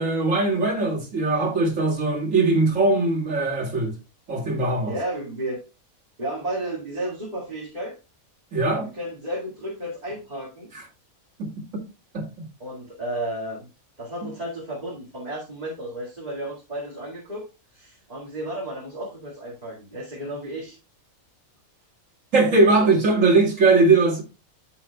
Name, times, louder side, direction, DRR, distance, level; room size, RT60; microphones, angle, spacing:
voice 1, 0.0-3.9 4.3-5.0 8.5-8.9 10.7-10.8 11.4-11.5 12.1-12.3 14.2-14.3 22.3-24.2, right 3 dB, 65° right, 2.6 m, -20 dB
voice 2, 4.9-5.6 6.2-8.0 8.8-10.7 12.6-13.7 14.0-17.5 17.7-20.8 22.7-23.2, right 1 dB, 30° right, 2.2 m, -33 dB
13.5 x 5.7 x 2.3 m
omnidirectional pair, 1.5 m